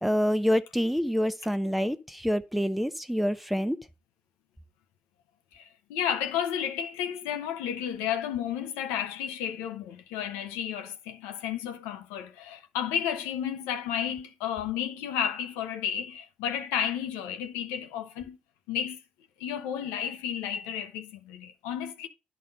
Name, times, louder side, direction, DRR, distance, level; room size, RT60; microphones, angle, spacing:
voice 1, 0.0-3.8, equal, ahead, 0.8 m, -27 dB
voice 2, 5.5-18.4 18.7-19.0 19.4-22.1, left 9 dB, 90° left, 0.7 m, -32 dB
10.0 x 4.0 x 5.2 m
hypercardioid pair, 45°, 4 cm